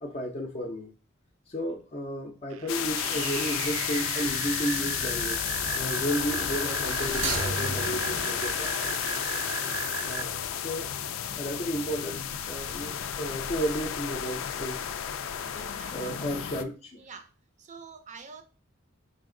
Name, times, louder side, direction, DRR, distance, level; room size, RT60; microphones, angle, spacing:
voice 1, 0.0-0.9 1.5-5.4 5.7-8.9 10.0-10.9 11.4-14.9 15.9-17.0, equal, 30° left, 1 dB, 0.5 m, -33 dB
sound 1, 2.5-10.2, right 9 dB, 90° right, 0.4 m, -36 dB
sound 2, 2.7-16.6, left 9 dB, 90° left, 0.4 m, -32 dB
sound 3, 4.2-4.5 6.6-9.4 9.7-9.8, right 3 dB, 70° right, 0.8 m, -36 dB
voice 2, 15.5-16.2 17.0-17.3 17.6-18.4, right 5 dB, 35° right, 7 dB, 0.5 m, -46 dB
3.8 x 2.5 x 3.7 m, 0.34 s
head